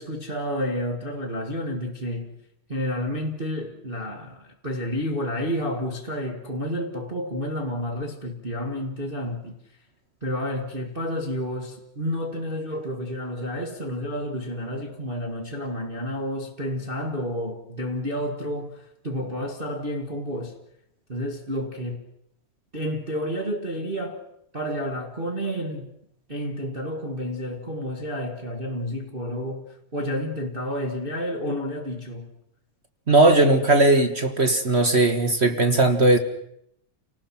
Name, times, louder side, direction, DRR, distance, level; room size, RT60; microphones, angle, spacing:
voice 1, 0.0-2.4 2.7-9.6 10.2-20.6 21.1-22.0 22.7-24.2 24.5-25.9 26.3-32.3, equal, 20° right, 1.6 m, -30 dB
voice 2, 33.1-36.2, right 2 dB, 50° right, 0.8 m, -18 dB
30.0 x 19.0 x 5.9 m
omnidirectional pair, 3.4 m